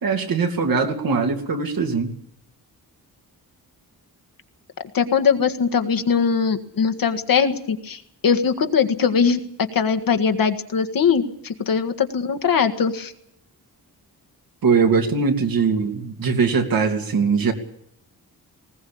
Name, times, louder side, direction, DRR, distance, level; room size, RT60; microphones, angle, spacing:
voice 1, 0.0-2.1 14.6-17.5, right 5 dB, 65° right, 4 dB, 2.9 m, -21 dB
voice 2, 4.9-9.4 9.7-13.1, left 6 dB, 65° left, 7 dB, 1.8 m, -21 dB
20.0 x 18.5 x 8.6 m, 0.71 s
wide cardioid pair, 170°, 37 cm